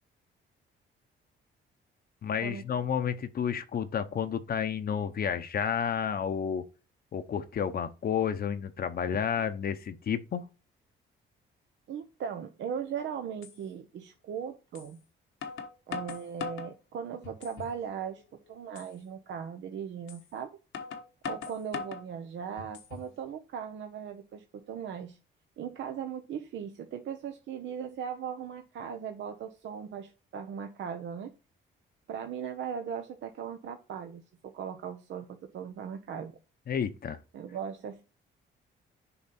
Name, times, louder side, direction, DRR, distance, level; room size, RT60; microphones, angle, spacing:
voice 1, 2.2-6.6 7.1-10.5 36.7-37.2, left 8 dB, 50° left, 0.8 m, -31 dB
voice 2, 11.9-15.0 15.9-18.2 18.5-20.5 21.2-25.2 25.6-31.3 32.1-36.4 37.3-38.0, right 7 dB, 70° right, 0.9 m, -38 dB
sound 1, 12.8-12.9 13.4-13.6 14.7-14.9 15.4-16.7 17.2-17.8 18.2-18.3 18.7-18.9 20.1-20.2 20.7-22.1 22.6-23.1, left 6 dB, 80° left, 1.2 m, -39 dB
7.1 x 3.9 x 4.2 m
cardioid pair, 90°, 20 cm